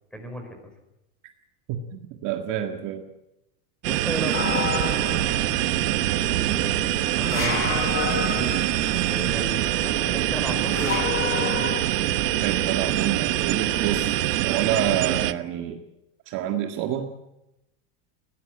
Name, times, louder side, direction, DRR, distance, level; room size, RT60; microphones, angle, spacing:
voice 1, 0.1-0.7 3.8-5.5 6.5-11.4, equal, ahead, 4 dB, 5.2 m, -36 dB
voice 2, 1.7-3.1 12.4-15.8 16.3-17.1, right 10 dB, 40° right, 4 dB, 1.8 m, -28 dB
sound 1, 3.8-15.3, right 16 dB, 90° right, 1.2 m, -24 dB
sound 2, 4.2-14.3, left 7 dB, 50° left, 5.7 m, -40 dB
sound 3, 4.3-5.6 7.2-9.0 10.6-11.8, left 7 dB, 25° left, 2.1 m, -29 dB
21.0 x 17.5 x 8.9 m, 0.91 s
supercardioid pair, 155°, 46 cm